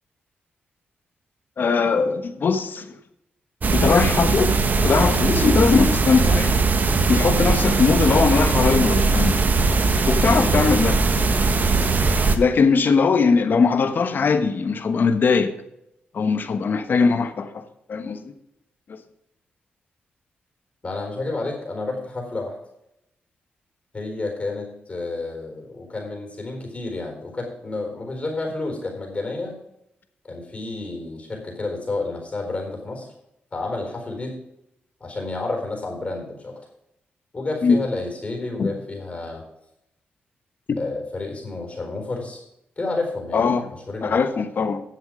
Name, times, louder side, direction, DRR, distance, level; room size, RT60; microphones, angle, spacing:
voice 1, 1.6-3.0 3.7-6.6 7.1-9.4 10.1-11.0 12.4-15.5 16.1-17.6 17.9-18.3 18.9-19.0 37.6-37.8 38.6-38.7 43.3-43.7 44.0-44.8, left 5 dB, 55° left, 1.2 m, -20 dB
sound 1, 3.6-12.4, right 3 dB, 45° right, 1.2 m, -20 dB
voice 2, 20.8-22.6 23.9-29.6 30.2-33.1 33.5-34.4 35.0-36.6 37.3-39.4 40.8-42.4 42.8-43.4 43.9-44.2, left 2 dB, 35° left, 4.2 m, -30 dB
11.0 x 7.3 x 5.1 m
cardioid pair, 70°, 4 cm